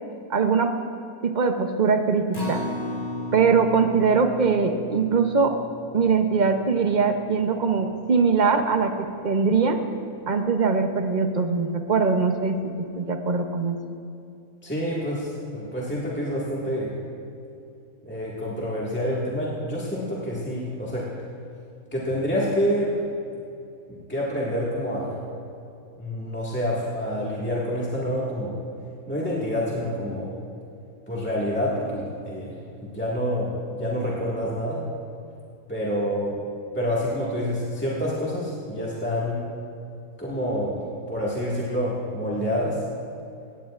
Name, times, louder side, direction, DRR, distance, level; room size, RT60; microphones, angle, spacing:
voice 1, 0.3-0.8 1.2-2.6 3.3-5.6 5.9-8.9 9.2-9.8 10.3-13.8, right 5 dB, 45° right, 6 dB, 0.7 m, -22 dB
Acoustic guitar, 2.3-8.6 9.0-9.1 9.5-9.6, left 1 dB, 30° left, 1.7 m, -36 dB
voice 2, 14.6-17.0 18.0-21.1 21.9-23.0 24.1-25.2 26.0-28.5 29.1-30.3 31.1-34.8 35.7-36.4 36.7-39.5 40.2-40.8 41.1-42.8, equal, 10° left, -7 dB, 1.7 m, -27 dB
17.5 x 16.5 x 2.5 m, 2.7 s
omnidirectional pair, 1.5 m